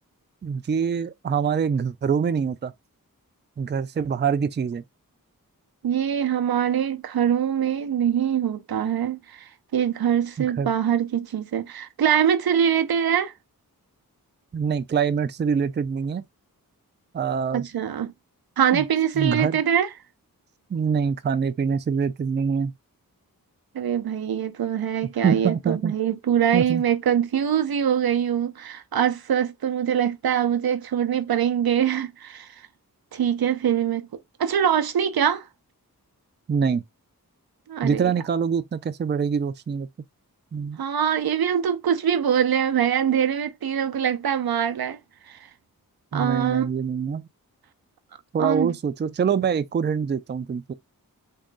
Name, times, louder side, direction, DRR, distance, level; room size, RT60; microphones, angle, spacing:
voice 1, 0.4-2.7 3.6-4.8 10.4-10.7 14.5-16.2 17.1-17.6 18.7-18.8 19.1-19.6 20.7-22.7 25.2-25.9 26.5-26.8 36.5-36.8 37.8-39.9 40.5-40.8 46.1-47.3 48.3-50.7, right 6 dB, 30° right, 0.4 m, -25 dB
voice 2, 5.8-13.3 17.5-18.1 18.6-19.9 23.7-32.5 33.1-34.1 34.4-35.5 37.7-38.0 40.8-45.0 45.3-45.4 46.1-46.7 48.4-48.7, right 9 dB, 85° right, 0.6 m, -23 dB
3.7 x 2.2 x 3.7 m
wide cardioid pair, 75°, 36 cm